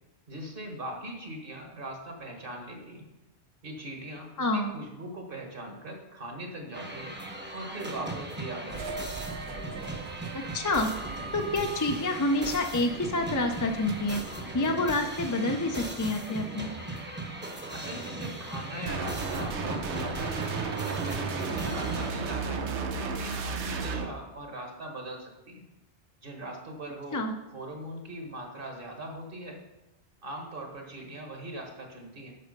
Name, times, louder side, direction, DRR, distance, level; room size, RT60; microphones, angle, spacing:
voice 1, 0.3-3.0 3.6-7.1 7.5-9.1 17.7-20.4 20.8-25.7 26.2-27.2 27.5-29.6 30.2-32.3, right 1 dB, 55° right, 2 dB, 1.6 m, -40 dB
voice 2, 4.4-4.8 10.3-10.9 11.3-14.2 14.5-16.7 27.1-27.3, left 2 dB, 25° left, 4 dB, 0.4 m, -28 dB
sound 1, 6.7-22.1, right 2 dB, 10° right, 0.9 m, -38 dB
sound 2, 8.7-15.2, right 4 dB, 70° right, 0.9 m, -42 dB
sound 3, 18.9-24.0, right 4 dB, 90° right, 1.1 m, -32 dB
8.5 x 6.2 x 5.3 m, 1.0 s
omnidirectional pair, 1.1 m